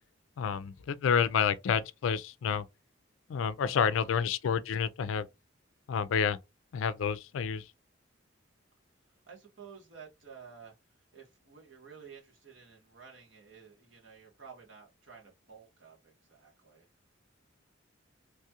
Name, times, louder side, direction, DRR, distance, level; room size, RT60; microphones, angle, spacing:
voice 1, 0.4-2.6 3.3-5.3 5.9-6.4 6.7-7.6, left 7 dB, 80° left, 0.3 m, -29 dB
voice 2, 3.6-4.3 9.3-10.7 11.1-16.9, right 6 dB, 70° right, 1.4 m, -53 dB
3.1 x 2.3 x 2.8 m
head